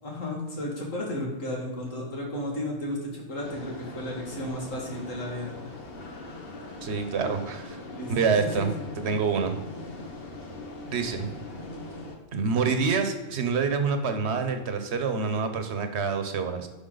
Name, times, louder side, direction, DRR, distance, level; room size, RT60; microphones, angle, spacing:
voice 1, 0.0-5.5 7.8-8.1 8.4-8.7, left 1 dB, 85° left, -1 dB, 2.4 m, -33 dB
sound 1, 3.4-12.1, left 2 dB, 50° left, 1.4 m, -40 dB
voice 2, 6.8-7.8 8.1-8.7 9.0-9.6 10.8-11.3 12.3-16.7, right 5 dB, 60° right, 8 dB, 1.2 m, -27 dB
10.0 x 5.9 x 4.0 m, 1.2 s
omnidirectional pair, 1.3 m